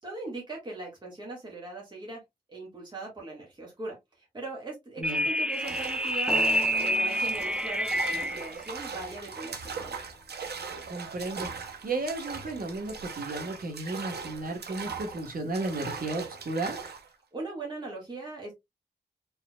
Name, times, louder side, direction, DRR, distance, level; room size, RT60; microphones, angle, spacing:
voice 1, 0.0-2.2 2.5-10.0 17.3-18.5, right 2 dB, 25° right, 1.8 m, -40 dB
sound 1, 5.0-8.5, equal, 5° right, 0.4 m, -28 dB
sound 2, 5.5-17.1, right 5 dB, 80° right, 0.8 m, -40 dB
sound 3, 6.3-11.3, left 2 dB, 15° left, 1.3 m, -42 dB
voice 2, 10.9-11.5 11.8-16.8, right 2 dB, 60° right, 1.4 m, -34 dB
4.2 x 3.7 x 2.3 m
wide cardioid pair, 110°, 17 cm